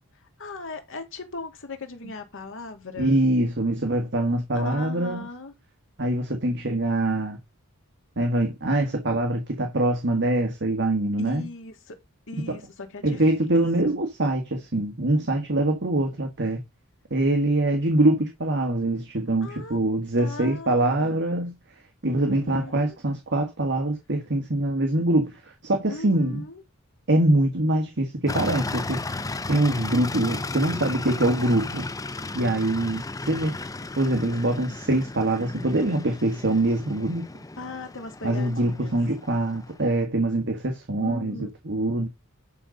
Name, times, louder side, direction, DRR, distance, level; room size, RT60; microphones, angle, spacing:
voice 1, 0.1-3.2 4.5-5.5 11.2-12.0 12.3-13.5 13.8-14.0 19.4-19.8 20.2-21.3 22.2-23.0 25.9-26.6 37.6-39.0 41.0-41.5, left 3 dB, 60° left, 2.2 m, -39 dB
voice 2, 3.0-5.2 6.0-7.4 8.2-11.4 12.5-12.6 13.0-16.6 17.1-21.5 22.0-26.4 27.1-29.0 29.5-31.8 32.3-33.5 34.0-37.2 38.2-42.1, right 1 dB, 55° right, 1.6 m, -24 dB
sound 1, 28.3-40.0, left 3 dB, 15° left, 0.6 m, -35 dB
11.5 x 4.0 x 5.2 m
head